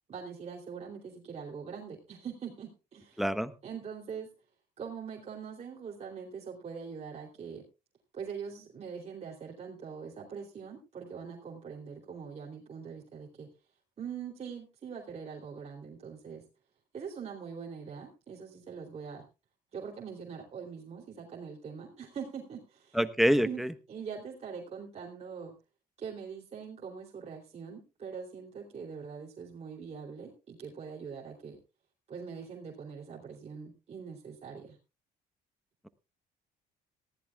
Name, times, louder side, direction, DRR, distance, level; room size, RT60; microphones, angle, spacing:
voice 1, 0.1-3.2 3.6-4.3 4.8-7.6 8.1-13.5 14.0-16.4 16.9-19.2 19.7-23.0 23.4-25.5 26.0-31.6 32.1-34.8, right 6 dB, 40° right, -2 dB, 3.1 m, -43 dB
voice 2, 3.2-3.5 22.9-23.7, equal, ahead, 11 dB, 1.0 m, -26 dB
18.5 x 15.0 x 2.3 m, 0.30 s
cardioid pair, 110°, 17 cm